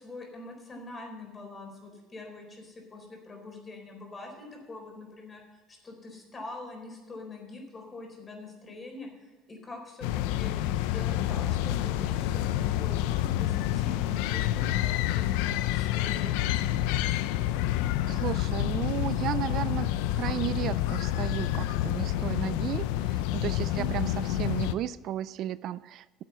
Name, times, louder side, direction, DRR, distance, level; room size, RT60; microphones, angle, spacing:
voice 1, 0.0-5.4 5.7-13.0 13.4-16.6 23.7-24.0, left 2 dB, 25° left, 2 dB, 4.0 m, -44 dB
sound 1, 10.0-24.7, left 13 dB, 85° left, 0.5 m, -28 dB
voice 2, 18.1-19.9 20.1-26.2, right 12 dB, 60° right, 17 dB, 0.3 m, -34 dB
10.5 x 7.7 x 6.8 m, 1.2 s
supercardioid pair, 100°, 0 cm